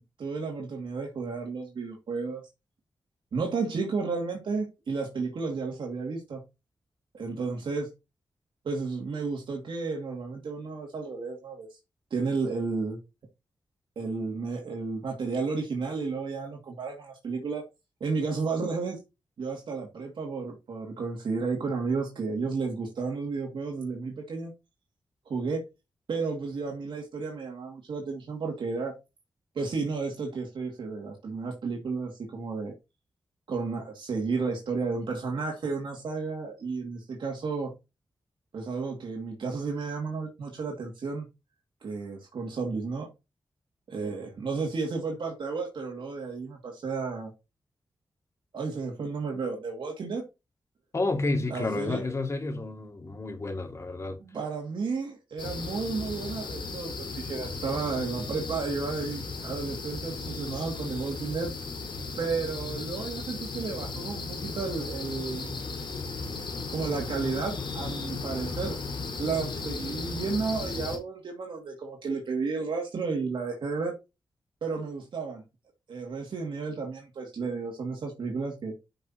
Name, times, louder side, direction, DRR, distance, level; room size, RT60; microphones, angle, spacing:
voice 1, 0.2-2.4 3.3-6.4 7.1-7.9 8.6-11.7 12.1-13.0 14.0-17.6 18.0-19.0 19.4-24.5 25.3-25.6 26.1-28.9 29.5-32.7 33.5-37.7 38.5-41.3 41.8-43.1 43.9-47.3 48.5-50.2 51.5-52.0 54.2-61.5 62.2-65.5 66.7-68.8 69.2-73.9 74.6-75.4 75.9-78.7, right 4 dB, 80° right, 2.4 m, -32 dB
voice 2, 50.9-54.2, left 2 dB, 35° left, 2.4 m, -30 dB
sound 1, 55.4-71.0, left 4 dB, 85° left, 4.6 m, -36 dB
11.5 x 5.9 x 3.0 m
wide cardioid pair, 120°, 8 cm